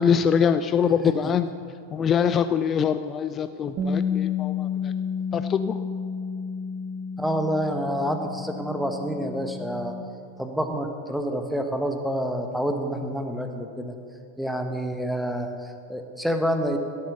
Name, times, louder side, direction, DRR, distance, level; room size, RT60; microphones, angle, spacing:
voice 1, 0.0-1.5 1.9-4.9 5.3-5.8, left 7 dB, 25° left, 11 dB, 0.4 m, -23 dB
Bass guitar, 3.8-10.0, left 6 dB, 35° right, 1.1 m, -31 dB
voice 2, 7.2-9.9 10.4-13.9 14.4-16.8, equal, ahead, 5 dB, 1.3 m, -28 dB
16.5 x 7.6 x 6.9 m, 2.4 s
figure-of-eight pair, 90°, 0 cm